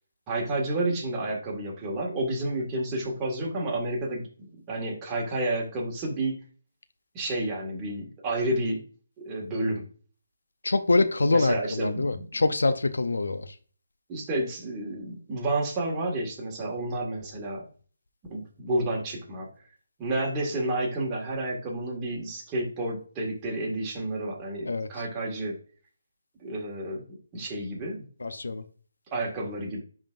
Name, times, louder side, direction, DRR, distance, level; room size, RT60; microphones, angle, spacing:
voice 1, 0.3-4.3 4.7-6.4 7.1-8.8 9.2-9.8 11.3-12.4 14.1-17.7 18.3-19.5 20.0-25.6 26.4-27.0 27.3-28.1 29.1-29.8, right 1 dB, 20° right, -2 dB, 1.8 m, -30 dB
voice 2, 10.6-13.5 24.7-24.9 28.2-28.6, left 3 dB, 80° left, 11 dB, 0.6 m, -25 dB
10.0 x 3.7 x 2.5 m, 0.41 s
figure-of-eight pair, 155°, 0 cm